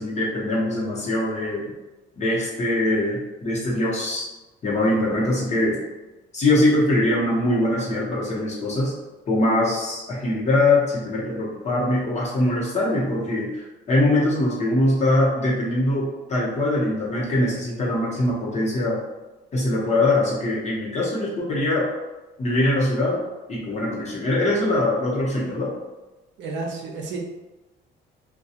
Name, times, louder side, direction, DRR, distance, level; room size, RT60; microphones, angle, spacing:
voice 1, 0.0-1.7 2.2-4.3 4.6-5.8 6.3-8.9 9.3-19.0 19.5-21.9 22.4-23.2 23.5-25.7, left 1 dB, 35° left, -6 dB, 1.0 m, -22 dB
voice 2, 26.4-27.2, right 3 dB, 65° right, 0 dB, 0.6 m, -31 dB
2.3 x 2.3 x 2.8 m, 1.1 s
cardioid pair, 110°, 19 cm